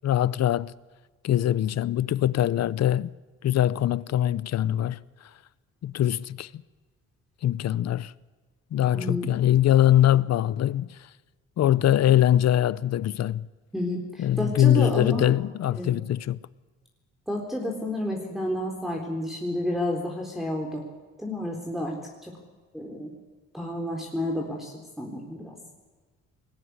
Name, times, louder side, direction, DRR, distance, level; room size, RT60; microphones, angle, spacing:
voice 1, 0.0-0.7 1.2-3.1 3.4-5.0 5.8-6.6 7.4-8.1 8.7-11.0 11.6-13.5 14.2-16.4, left 12 dB, 60° left, 0.7 m, -22 dB
voice 2, 8.9-9.3 13.7-15.3 15.7-16.0 17.3-20.8 21.2-22.0 22.2-22.3 22.7-23.1 23.5-25.6, left 1 dB, ahead, 3.9 m, -30 dB
21.5 x 18.0 x 9.7 m
cardioid pair, 90°, 30 cm